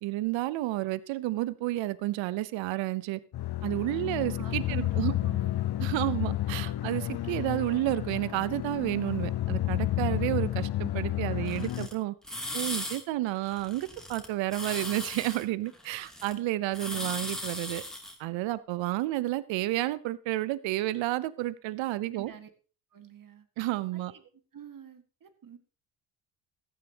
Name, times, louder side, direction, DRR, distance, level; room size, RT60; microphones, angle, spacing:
voice 1, 0.0-3.2 3.6-5.1 5.8-12.1 12.5-17.8 18.2-22.3 23.6-24.1, right 16 dB, 65° right, 18 dB, 0.8 m, -31 dB
sound 1, 3.3-11.9, left 14 dB, 50° left, 0.9 m, -31 dB
voice 2, 4.4-5.5 16.3-16.4 16.9-17.2 21.9-22.5 22.9-23.5 23.9-24.2 24.5-25.6, right 8 dB, 40° right, 10 dB, 1.8 m, -48 dB
sound 2, 11.5-11.9 12.2-13.0 13.3-14.3 14.5-16.3 16.7-18.1, left 1 dB, ahead, 2.8 m, -37 dB
14.5 x 10.5 x 2.9 m, 0.38 s
hypercardioid pair, 60°, 49 cm